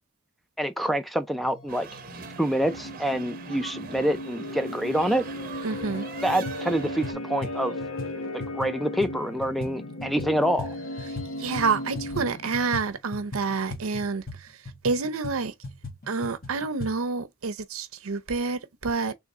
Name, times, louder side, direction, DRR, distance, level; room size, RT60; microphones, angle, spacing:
voice 1, 0.6-1.9 2.4-5.3 6.2-7.8 8.3-10.7, right 1 dB, ahead, 0.4 m, -26 dB
sound 1, 1.4-12.8, left 1 dB, 75° left, 1.0 m, -37 dB
sound 2, 1.7-7.1, right 6 dB, 45° right, 0.7 m, -42 dB
voice 2, 5.6-6.1 11.4-14.5 14.8-15.5 16.1-19.1, right 4 dB, 80° right, 0.7 m, -28 dB
sound 3, 5.7-6.0 6.3-11.3 11.6-16.9, left 2 dB, 45° left, 1.6 m, -39 dB
3.6 x 3.4 x 4.2 m
head